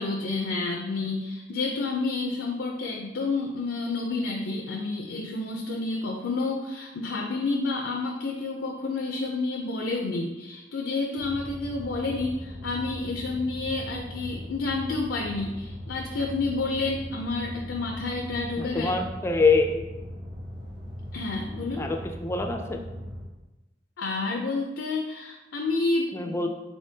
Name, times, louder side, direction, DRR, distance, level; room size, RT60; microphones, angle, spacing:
voice 1, 0.0-18.9 21.1-21.9 24.0-26.3, left 3 dB, 80° left, 1 dB, 0.4 m, -29 dB
sound 1, 11.2-23.2, equal, 30° right, 1.0 m, -39 dB
voice 2, 18.6-19.8 21.8-22.8 26.1-26.5, left 3 dB, 15° left, 4 dB, 0.3 m, -25 dB
4.3 x 3.5 x 2.7 m, 1.0 s
head